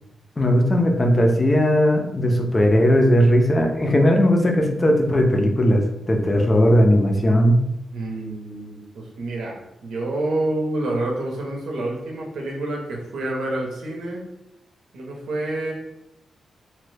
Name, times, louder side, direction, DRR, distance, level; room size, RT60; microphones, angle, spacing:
voice 1, 0.4-7.6, equal, 20° left, 3 dB, 0.4 m, -18 dB
voice 2, 7.9-14.3 14.9-15.7, right 2 dB, 90° right, 0 dB, 0.7 m, -28 dB
3.0 x 2.1 x 3.2 m, 0.86 s
wide cardioid pair, 175°, 0 cm